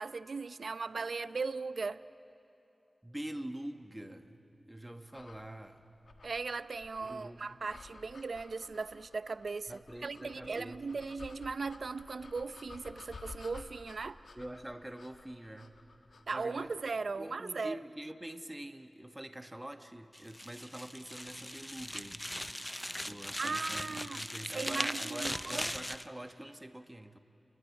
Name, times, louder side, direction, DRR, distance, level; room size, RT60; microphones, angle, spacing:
voice 1, 0.0-2.0 6.2-14.2 16.3-17.8 23.4-24.3 24.5-25.7, right 4 dB, 70° right, 15 dB, 0.6 m, -38 dB
voice 2, 3.0-5.9 7.0-7.6 9.7-11.0 14.3-15.7 16.3-16.8 17.2-22.3 23.1-27.2, right 1 dB, 15° right, 8 dB, 1.4 m, -45 dB
sound 1, 5.1-17.0, left 3 dB, 80° left, 1.6 m, -53 dB
sound 2, 20.1-26.1, equal, 10° left, 0.6 m, -39 dB
30.0 x 20.5 x 9.1 m, 2.7 s
wide cardioid pair, 65°, 0 cm